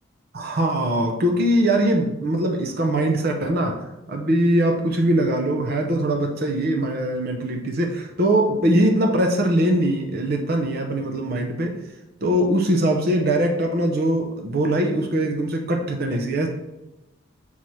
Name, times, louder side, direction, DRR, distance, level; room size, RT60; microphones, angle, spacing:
voice 1, 0.3-3.8 4.1-11.7 12.2-16.5, right 1 dB, 50° right, 2 dB, 0.7 m, -21 dB
6.2 x 5.5 x 3.1 m, 0.97 s
head